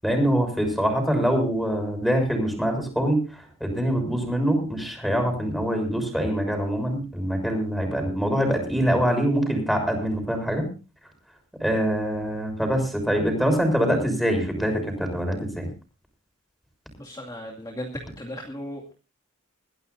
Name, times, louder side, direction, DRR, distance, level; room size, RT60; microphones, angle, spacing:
voice 1, 0.0-10.7 11.6-15.7, equal, ahead, 4 dB, 6.4 m, -24 dB
voice 2, 17.0-18.9, equal, 20° left, 0 dB, 2.4 m, -36 dB
22.0 x 15.5 x 2.7 m, 0.33 s
head